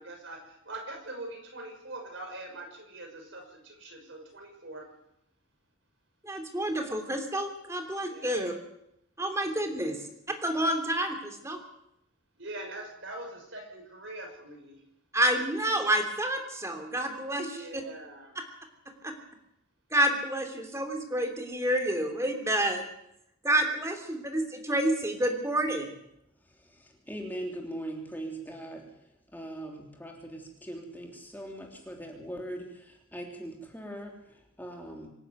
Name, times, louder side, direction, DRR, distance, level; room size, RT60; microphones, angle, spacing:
voice 1, 0.0-4.8 8.0-8.4 9.6-9.8 12.4-14.8 17.4-18.3 23.7-23.8, right 2 dB, 60° right, 2 dB, 6.5 m, -43 dB
voice 2, 6.2-8.5 9.2-10.0 10.4-11.6 15.1-17.6 19.0-19.1 19.9-22.9 23.4-25.9, right 1 dB, 15° right, 4 dB, 3.0 m, -29 dB
voice 3, 26.4-29.0 29.3-35.1, right 1 dB, 10° left, 1 dB, 3.3 m, -41 dB
25.5 x 11.5 x 9.4 m, 0.80 s
head